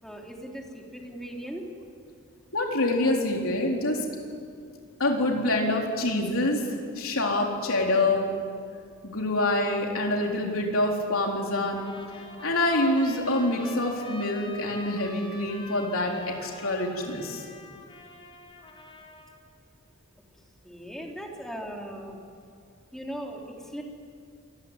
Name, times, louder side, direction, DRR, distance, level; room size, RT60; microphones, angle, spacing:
voice 1, 0.0-1.6 20.6-22.2 22.9-23.8, equal, ahead, 0 dB, 3.5 m, -38 dB
voice 2, 2.5-4.1 5.0-6.6 7.0-8.2 9.0-11.9 12.4-17.4, left 2 dB, 70° left, 0 dB, 4.0 m, -26 dB
Trumpet, 11.7-19.4, left 2 dB, 25° left, 4.7 m, -45 dB
27.5 x 21.0 x 9.8 m, 2.3 s
head